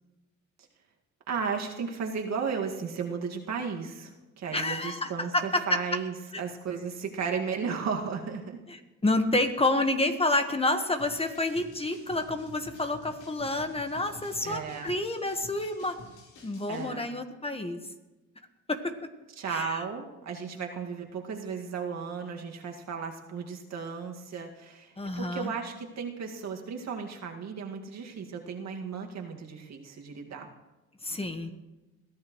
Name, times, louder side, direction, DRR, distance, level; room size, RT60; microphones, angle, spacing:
voice 1, 1.3-8.6 14.4-14.9 16.7-17.1 19.4-30.5, right 6 dB, 60° right, 2 dB, 2.1 m, -35 dB
voice 2, 4.5-5.8 6.3-6.4 8.7-8.8 9.0-16.0 16.4-17.8 18.7-18.9 19.5-19.8 25.0-25.5 31.0-31.5, left 2 dB, 20° left, 6 dB, 1.4 m, -29 dB
sound 1, 11.0-16.9, left 2 dB, 80° left, 4.2 m, -50 dB
21.5 x 14.5 x 3.2 m, 1.1 s
cardioid pair, 90°, 30 cm